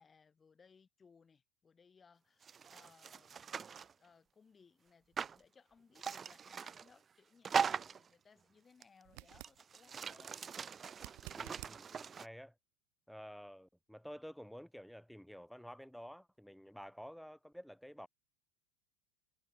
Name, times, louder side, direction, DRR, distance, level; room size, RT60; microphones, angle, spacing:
voice 1, 0.0-10.4, left 5 dB, 20° left, 7.4 m, -66 dB
sound 1, 2.4-3.9 5.2-5.4 6.0-6.9 7.4-8.1 8.8-8.9 9.3-12.3, right 6 dB, 25° right, 1.0 m, -40 dB
sound 2, 9.0-9.6 10.9-11.8 14.8-14.9, right 29 dB, 60° right, 5.1 m, -51 dB
voice 2, 11.4-12.6 13.1-18.1, equal, ahead, 1.8 m, -51 dB
supercardioid pair, 110°, 0 cm